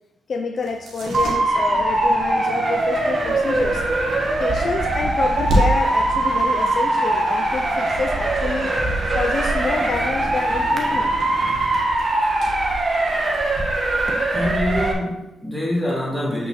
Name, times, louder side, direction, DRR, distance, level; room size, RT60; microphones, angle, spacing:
voice 1, 0.3-3.8 4.4-8.8 9.1-11.1, left 4 dB, 50° left, 5 dB, 0.5 m, -27 dB
sound 1, 0.6-13.5, right 1 dB, 65° right, 1.7 m, -31 dB
Motor vehicle (road) / Siren, 1.1-14.9, right 2 dB, 35° right, 1.4 m, -21 dB
voice 2, 14.3-16.5, left 1 dB, ahead, -6 dB, 2.8 m, -25 dB
7.3 x 5.8 x 4.2 m, 0.90 s
cardioid pair, 105°, 0 cm